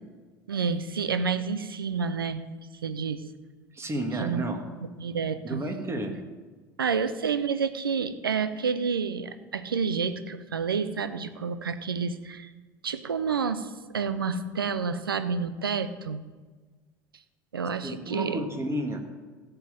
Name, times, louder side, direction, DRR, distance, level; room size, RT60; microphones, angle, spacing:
voice 1, 0.5-2.5 2.8-3.2 4.2-4.4 5.0-5.6 6.8-12.5 12.8-16.2 17.5-18.4, right 5 dB, 85° right, 12 dB, 0.7 m, -29 dB
voice 2, 3.7-4.6 5.4-6.2 17.8-19.0, right 1 dB, 25° right, 4 dB, 2.2 m, -31 dB
15.0 x 5.6 x 7.3 m, 1.4 s
figure-of-eight pair, 65°, 12 cm